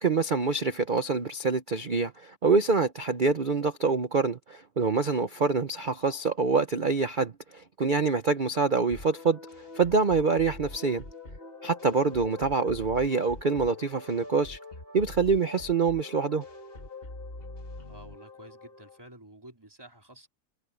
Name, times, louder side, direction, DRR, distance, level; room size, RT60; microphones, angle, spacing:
voice 1, 0.0-9.4 9.7-11.0 11.6-14.6 14.9-16.4, right 4 dB, 75° right, 0.4 m, -26 dB
sound 1, 8.9-19.0, left 2 dB, 30° left, 3.1 m, -44 dB
voice 2, 17.8-20.3, right 1 dB, 10° right, 3.8 m, -50 dB
omnidirectional pair, 2.1 m